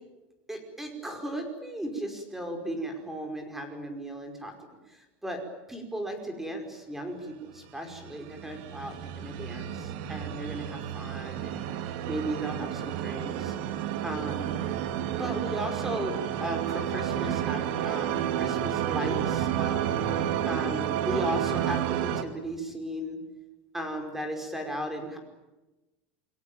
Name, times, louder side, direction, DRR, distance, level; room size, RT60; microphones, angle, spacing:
voice 1, 0.5-4.5 4.9-5.4 5.7-11.7 12.1-13.6 14.0-14.6 14.9-19.8 20.5-23.2 23.7-25.2, right 1 dB, 5° right, 5 dB, 5.3 m, -36 dB
sound 1, 7.9-22.2, right 10 dB, 65° right, 2.4 m, -31 dB
29.0 x 21.5 x 8.9 m, 1.1 s
supercardioid pair, 150°, 6 cm